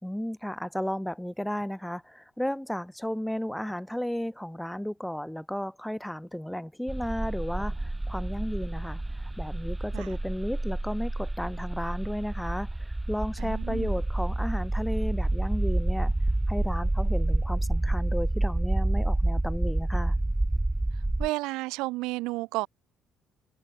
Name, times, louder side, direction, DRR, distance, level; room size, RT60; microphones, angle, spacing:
voice 1, 0.0-16.1 16.5-20.2, equal, 5° left, 1.9 m, -33 dB
sound 1, 6.9-21.3, right 2 dB, 10° right, 1.2 m, -28 dB
voice 2, 13.4-14.0 21.2-22.7, right 21 dB, 70° right, 4.1 m, -32 dB
hypercardioid pair, 50°, 0 cm